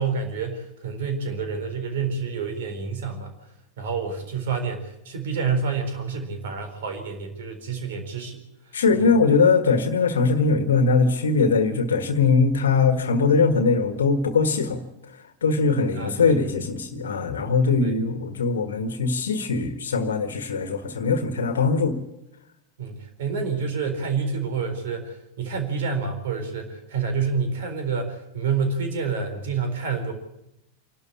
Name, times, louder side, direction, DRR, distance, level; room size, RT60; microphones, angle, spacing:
voice 1, 0.0-3.3 3.8-8.4 8.9-9.1 15.9-16.4 17.8-18.0 22.8-30.1, right 5 dB, 60° right, 6 dB, 4.3 m, -28 dB
voice 2, 8.7-14.8 15.4-22.0, left 4 dB, 70° left, 9 dB, 1.5 m, -21 dB
26.5 x 12.5 x 8.6 m, 0.87 s
figure-of-eight pair, 90°, 0 cm